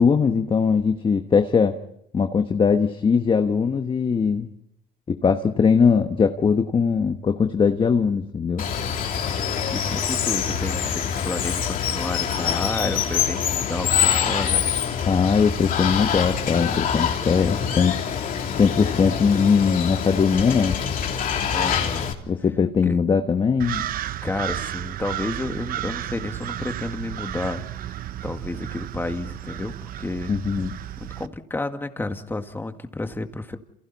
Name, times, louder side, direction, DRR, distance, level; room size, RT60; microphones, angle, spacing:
voice 1, 0.0-1.8 2.1-4.5 5.1-8.7 15.1-18.0 18.6-20.8 22.3-23.8 30.3-30.8, left 6 dB, 25° left, 6 dB, 1.3 m, -20 dB
Water, 8.6-22.1, left 8 dB, 45° left, 3.0 m, -25 dB
voice 2, 9.7-14.7 21.5-22.1 22.9-23.0 24.2-28.0 28.2-30.3 30.9-33.6, left 2 dB, 10° left, 6 dB, 1.9 m, -31 dB
sound 1, 23.6-31.3, right 12 dB, 50° right, 0.8 m, -33 dB
28.5 x 28.5 x 4.2 m, 0.77 s
cardioid pair, 115°, 19 cm